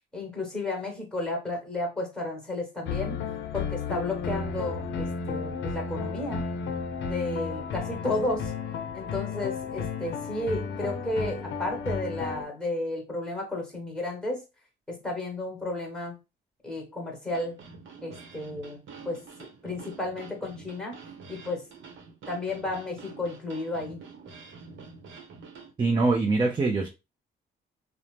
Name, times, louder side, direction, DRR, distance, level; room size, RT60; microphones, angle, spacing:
voice 1, 0.1-3.1 3.5-6.4 7.0-8.5 8.9-14.4 14.9-16.1 16.6-17.6 18.0-21.0 21.3-21.6 22.3-24.0, left 2 dB, 5° left, 1.2 m, -33 dB
sound 1, 2.9-12.5, left 5 dB, 70° left, 0.5 m, -33 dB
sound 2, 17.3-25.7, right 5 dB, 70° right, 0.8 m, -47 dB
voice 2, 25.8-26.9, right 3 dB, 25° right, 0.5 m, -23 dB
2.7 x 2.1 x 3.1 m
cardioid pair, 90°, 20 cm